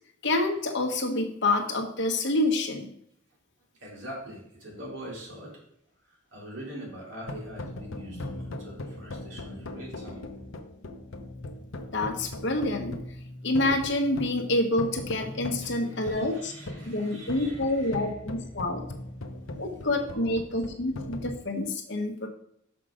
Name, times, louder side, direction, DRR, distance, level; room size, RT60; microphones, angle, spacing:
voice 1, 0.2-2.9 11.9-13.0 13.4-16.5 16.8-18.8 19.6-22.3, left 2 dB, 65° left, 2 dB, 1.3 m, -27 dB
voice 2, 3.8-5.6 6.0-10.3 15.6-18.1 20.1-20.3, equal, 70° right, -4 dB, 2.7 m, -43 dB
sound 1, 7.2-21.3, left 1 dB, 85° left, 0.8 m, -40 dB
6.2 x 5.9 x 5.0 m, 0.70 s
head